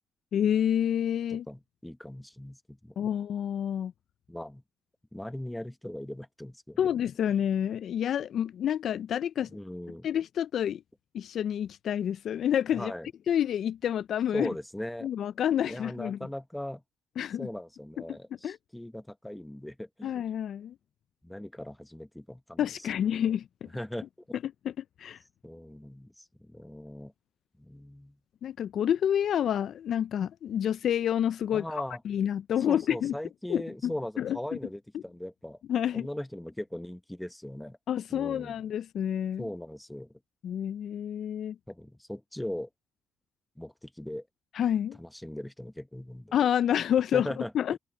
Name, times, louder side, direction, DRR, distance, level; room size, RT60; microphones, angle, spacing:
voice 1, 0.3-1.4 3.0-3.9 6.8-9.5 10.0-10.8 11.1-12.9 13.3-14.5 15.0-16.2 17.2-17.5 18.4-18.6 20.0-20.7 22.6-23.7 24.4-25.2 28.4-31.6 32.0-33.2 33.5-34.4 35.7-36.1 37.9-39.5 40.4-41.6 44.5-45.0 46.3-47.8, left 9 dB, 65° left, 0.3 m, -28 dB
voice 2, 1.3-2.9 4.3-4.6 5.1-6.9 9.5-10.1 12.7-13.1 14.3-15.1 15.6-16.8 17.4-20.1 21.2-22.7 23.7-24.4 25.4-27.1 27.6-28.2 31.5-32.0 32.7-35.6 35.9-37.8 38.1-38.6 39.4-40.1 41.7-42.7 43.6-44.3 45.0-46.3 47.1-47.8, left 1 dB, 5° left, 0.9 m, -39 dB
open air
cardioid pair, 110°, 0 cm